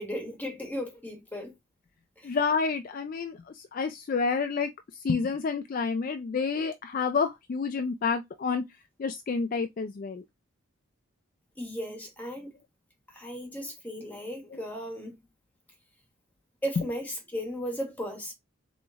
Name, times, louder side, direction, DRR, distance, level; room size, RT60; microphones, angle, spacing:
voice 1, 0.0-1.5 2.2-2.4 11.6-12.6 13.1-15.2 16.6-18.3, equal, 10° left, 1.3 m, -36 dB
voice 2, 2.2-3.4 3.7-4.7 5.0-8.6 9.0-10.2, left 5 dB, 40° left, 0.3 m, -29 dB
3.8 x 3.1 x 3.5 m
head